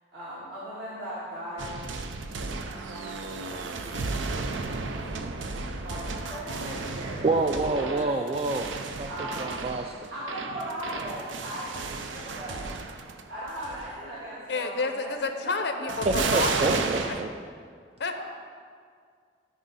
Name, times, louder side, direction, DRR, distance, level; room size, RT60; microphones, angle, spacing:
voice 1, 0.1-1.9 2.7-4.1 4.6-5.0 5.3-8.1 9.0-9.6 10.1-11.8 12.1-12.7 13.3-16.7 18.1-18.2, equal, 65° right, 1.9 m, -39 dB
sound 1, 1.6-13.2 13.5-14.0 15.9-17.2, right 4 dB, 80° right, 0.6 m, -33 dB
voice 2, 7.2-8.7 9.0-9.1 9.4-9.9 16.1-17.3, right 3 dB, 30° right, 0.3 m, -27 dB
voice 3, 14.5-17.2 18.0-18.2, left 3 dB, 60° left, 0.6 m, -30 dB
13.5 x 4.9 x 4.1 m
head